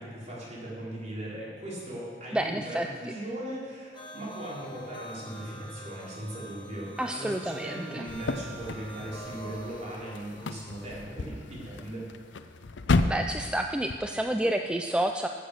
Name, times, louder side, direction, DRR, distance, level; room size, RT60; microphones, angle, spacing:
voice 1, 0.0-12.0, right 1 dB, 40° right, -6 dB, 3.8 m, -38 dB
voice 2, 2.3-2.9 7.0-8.1 13.1-15.3, right 1 dB, 5° right, 4 dB, 0.3 m, -29 dB
sound 1, 3.9-10.8, right 1 dB, 30° left, 1.3 m, -46 dB
sound 2, 8.1-14.0, left 3 dB, 85° left, 0.6 m, -33 dB
14.5 x 6.8 x 6.5 m, 2.1 s
head